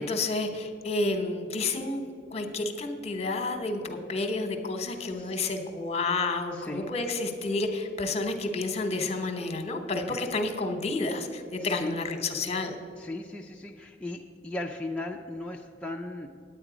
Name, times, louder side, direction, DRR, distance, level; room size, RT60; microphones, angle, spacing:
voice 1, 0.0-2.0 2.3-12.8, left 3 dB, 35° left, 6 dB, 1.0 m, -30 dB
voice 2, 4.9-5.5 6.5-6.9 10.1-10.3 11.6-11.9 13.0-16.3, left 2 dB, 5° left, -1 dB, 0.4 m, -37 dB
9.6 x 8.9 x 5.0 m, 2.4 s
head